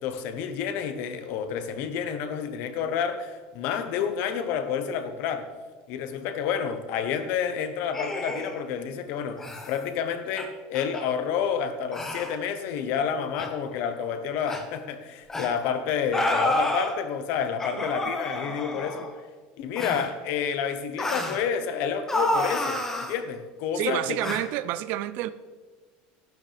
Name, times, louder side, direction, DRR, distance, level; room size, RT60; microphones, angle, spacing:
voice 1, 0.0-5.5 5.9-19.1 19.6-24.2, left 7 dB, 55° left, 1.1 m, -29 dB
sound 1, 7.9-8.6 9.4-9.7 10.4-10.5 10.7-11.0 11.9-12.3 13.4-13.5 14.5-14.6 15.3-15.5 16.1-16.9 17.6-19.1 19.8-20.1 21.0-21.4 22.1-23.1 24.2-24.4, left 1 dB, 10° left, 1.0 m, -29 dB
voice 2, 23.7-25.3, right 14 dB, 50° right, 0.5 m, -29 dB
12.0 x 11.5 x 3.4 m
cardioid pair, 170°, 4 cm